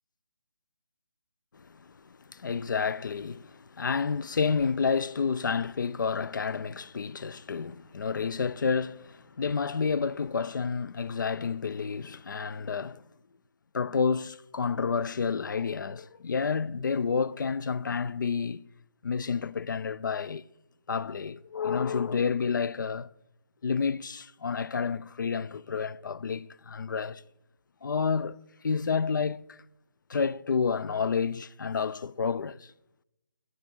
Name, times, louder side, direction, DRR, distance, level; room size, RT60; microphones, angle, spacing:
voice 1, 1.5-13.0 13.7-18.6 19.0-20.4 20.9-23.1 23.6-27.2 27.8-29.6 30.1-32.7, left 5 dB, 60° left, 0.4 m, -30 dB
10.0 x 7.4 x 4.4 m
figure-of-eight pair, 150°, 12 cm